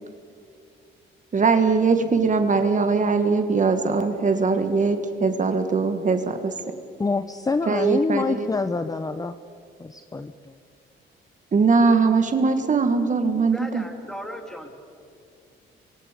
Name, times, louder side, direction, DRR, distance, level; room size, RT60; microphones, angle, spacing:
voice 1, 1.3-6.5 7.7-8.5 11.5-13.8, right 4 dB, 40° right, 7 dB, 1.7 m, -21 dB
voice 2, 7.0-9.4 9.8-10.5, left 3 dB, 20° left, 10 dB, 0.8 m, -26 dB
voice 3, 13.5-14.7, equal, 5° left, 3 dB, 3.1 m, -36 dB
27.5 x 24.0 x 5.2 m, 2.4 s
cardioid pair, 90°, 20 cm